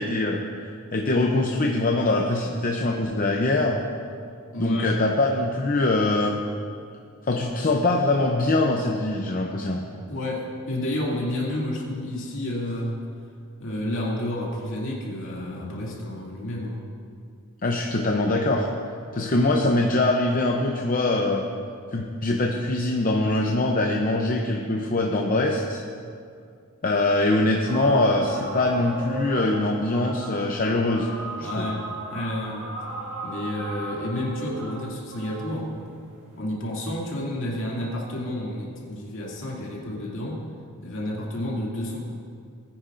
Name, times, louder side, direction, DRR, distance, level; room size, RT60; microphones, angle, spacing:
voice 1, 0.0-3.8 4.6-6.4 7.3-9.8 17.6-18.7 19.1-21.5 21.9-25.8 26.8-31.1 31.4-31.7, left 2 dB, 40° left, 1 dB, 0.7 m, -23 dB
voice 2, 4.5-5.0 10.1-13.0 13.6-16.8 19.1-19.4 31.4-32.7 33.2-35.8 36.4-40.4 40.8-42.0, left 1 dB, 60° left, -3 dB, 2.4 m, -30 dB
sound 1, 27.7-36.4, right 2 dB, 55° right, 2.1 m, -36 dB
19.5 x 9.9 x 2.6 m, 2.3 s
head